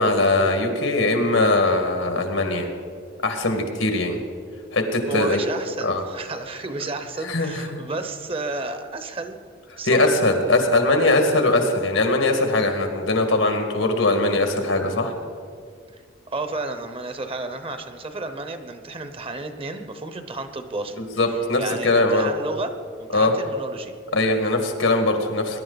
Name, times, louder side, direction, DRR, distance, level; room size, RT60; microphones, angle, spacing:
voice 1, 0.0-2.7 3.2-4.2 4.7-5.4 5.8-6.0 7.2-7.8 9.9-15.1 21.0-22.3 23.1-23.3 24.1-25.6, left 2 dB, 85° left, 5 dB, 1.9 m, -21 dB
voice 2, 5.1-9.4 9.8-10.1 16.3-21.1 21.6-23.9, right 3 dB, 30° right, 8 dB, 0.8 m, -32 dB
20.5 x 11.0 x 4.0 m, 2.1 s
head